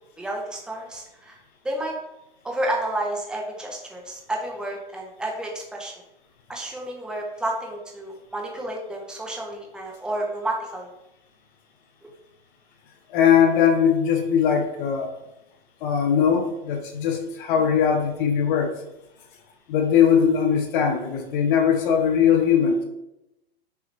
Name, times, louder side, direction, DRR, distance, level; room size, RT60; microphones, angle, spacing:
voice 1, 0.2-1.4 1.6-2.0 2.4-5.9 6.5-10.9 12.0-12.1, right 1 dB, 5° right, -1 dB, 0.7 m, -30 dB
voice 2, 13.1-15.1 15.8-18.7 19.7-22.8, left 7 dB, 55° left, 4 dB, 1.0 m, -20 dB
6.0 x 3.0 x 2.6 m, 0.89 s
hypercardioid pair, 115°, 30 cm